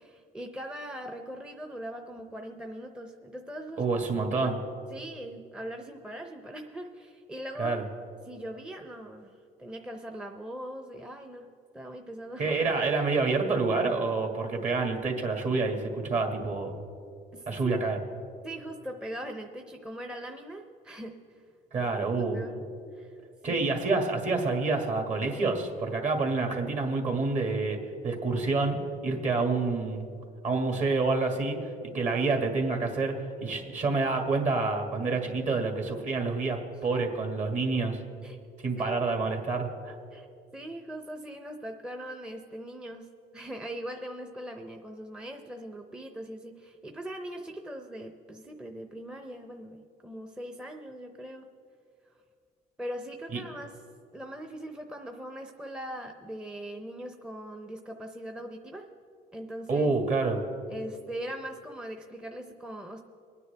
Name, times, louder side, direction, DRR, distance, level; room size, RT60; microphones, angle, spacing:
voice 1, 0.0-3.9 4.2-4.5 4.9-7.8 8.2-12.6 17.3-17.9 18.4-21.4 21.8-22.6 22.9-23.1 23.5-23.6 38.2-38.4 38.8-39.4 40.1-40.3 40.5-43.1 43.3-51.5 52.8-53.8 54.1-58.9 59.3-59.9 60.7-63.0, right 1 dB, 5° right, 3 dB, 0.7 m, -41 dB
voice 2, 3.8-4.6 7.6-7.8 12.4-16.8 17.5-18.0 21.7-22.4 23.4-27.8 28.0-28.8 29.0-30.1 30.4-31.6 31.9-33.2 33.4-38.0 38.6-39.9 53.3-53.4 59.7-60.4, right 3 dB, 45° right, 3 dB, 2.1 m, -28 dB
23.5 x 9.6 x 3.4 m, 2.4 s
cardioid pair, 110°, 17 cm